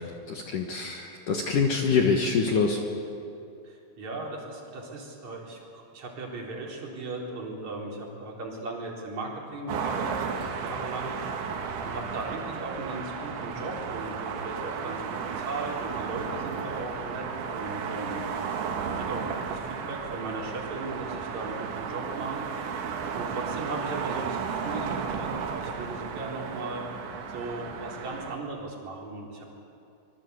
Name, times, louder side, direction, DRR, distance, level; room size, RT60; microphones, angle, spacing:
voice 1, 0.0-2.8, left 5 dB, 65° left, 2 dB, 2.2 m, -25 dB
voice 2, 3.6-11.1 11.8-17.2 17.5-18.3 18.9-22.4 23.2-26.9 27.3-29.4, right 2 dB, 40° right, -2 dB, 4.9 m, -37 dB
sound 1, 9.7-28.4, right 6 dB, 70° right, 3.9 m, -34 dB
25.0 x 22.5 x 8.3 m, 2.6 s
omnidirectional pair, 5.6 m